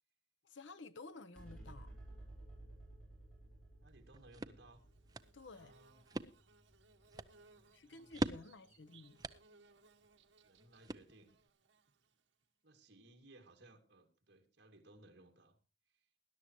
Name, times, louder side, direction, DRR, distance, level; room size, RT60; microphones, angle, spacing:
voice 1, 0.4-1.9 5.3-5.7 7.7-9.2, left 3 dB, 75° left, 0.8 m, -53 dB
sound 1, 1.3-8.0, right 1 dB, 5° left, 4.2 m, -56 dB
voice 2, 3.8-4.8 5.5-6.1 7.4-8.1 8.4-9.0 10.4-11.3 12.6-15.6 15.9-16.1, right 2 dB, 60° right, 2.3 m, -63 dB
sound 2, 3.9-11.5, right 2 dB, 20° right, 0.6 m, -46 dB
Bird / Buzz, 4.7-12.4, right 4 dB, 80° right, 1.3 m, -67 dB
20.0 x 11.5 x 3.0 m
head